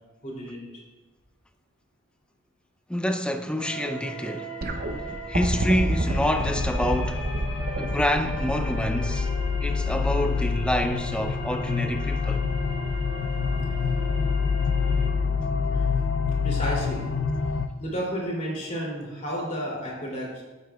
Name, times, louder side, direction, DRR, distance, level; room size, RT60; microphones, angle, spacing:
voice 1, 0.2-0.7 15.7-15.8 16.4-17.0 17.8-20.4, equal, 35° left, 2.9 m, -31 dB
voice 2, 2.9-4.6 5.3-7.3 7.8-9.3 9.6-12.4, equal, 5° left, 0.5 m, -27 dB
sound 1, 3.6-15.1, equal, 75° left, 3.3 m, -39 dB
sound 2, 4.6-11.8 12.9-13.0, right 1 dB, 45° right, 0.7 m, -30 dB
sound 3, 5.4-17.7, left 5 dB, 60° left, 0.5 m, -27 dB
13.0 x 9.2 x 2.4 m
head